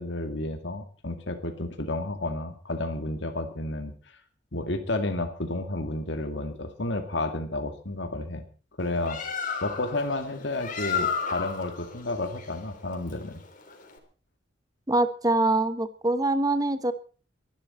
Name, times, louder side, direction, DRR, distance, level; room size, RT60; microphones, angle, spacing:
voice 1, 0.0-3.9 4.5-8.4 8.8-9.2 9.6-13.4, left 2 dB, 65° left, 6 dB, 2.2 m, -31 dB
Bird, 8.8-14.0, left 6 dB, 45° left, 3.7 m, -33 dB
voice 2, 14.9-16.9, right 2 dB, 20° right, 12 dB, 1.1 m, -24 dB
23.0 x 12.0 x 4.3 m, 0.39 s
head